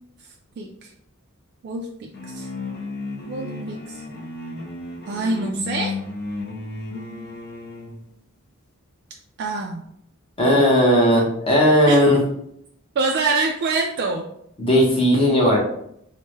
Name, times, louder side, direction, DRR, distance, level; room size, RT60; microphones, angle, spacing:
voice 1, 0.6-0.9 1.6-2.5 3.3-4.0 5.1-5.9 9.4-9.8 11.9-12.0 13.0-14.3, right 3 dB, 50° right, 0 dB, 0.3 m, -25 dB
sound 1, 2.1-8.0, left 3 dB, 50° left, 0.6 m, -33 dB
voice 2, 10.4-12.2 14.6-15.6, equal, 25° left, -3 dB, 0.8 m, -16 dB
3.3 x 2.1 x 3.1 m, 0.73 s
head